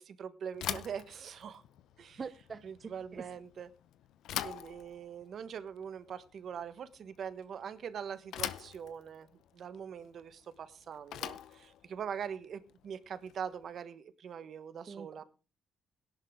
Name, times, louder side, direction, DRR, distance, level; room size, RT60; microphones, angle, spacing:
voice 1, 0.0-1.6 2.0-2.2 2.6-3.7 4.4-15.2, right 7 dB, 60° right, 1.3 m, -43 dB
Bicycle / Thump thud, 0.5-13.6, left 11 dB, 85° left, 0.8 m, -44 dB
voice 2, 2.2-3.2 14.8-15.2, right 5 dB, 40° right, 0.7 m, -45 dB
17.5 x 11.0 x 3.7 m
cardioid pair, 90°, 0 cm